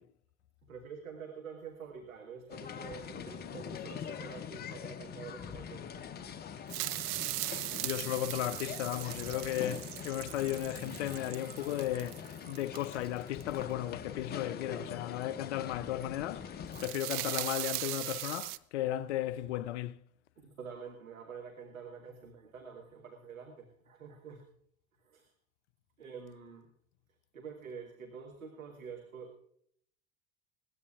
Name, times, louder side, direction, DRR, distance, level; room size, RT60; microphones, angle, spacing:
voice 1, 0.6-6.0 6.4-6.5 20.4-24.5 24.9-25.3 26.0-26.7 27.3-29.4, right 6 dB, 75° right, 1.7 m, -47 dB
sound 1, 2.5-16.9, left 7 dB, 25° left, 0.9 m, -43 dB
sound 2, 6.7-13.4 16.5-18.6, right 20 dB, 40° right, 0.5 m, -39 dB
voice 2, 7.8-16.5 16.8-20.0, left 13 dB, 55° left, 0.7 m, -35 dB
20.5 x 18.0 x 2.4 m
figure-of-eight pair, 75°, 41 cm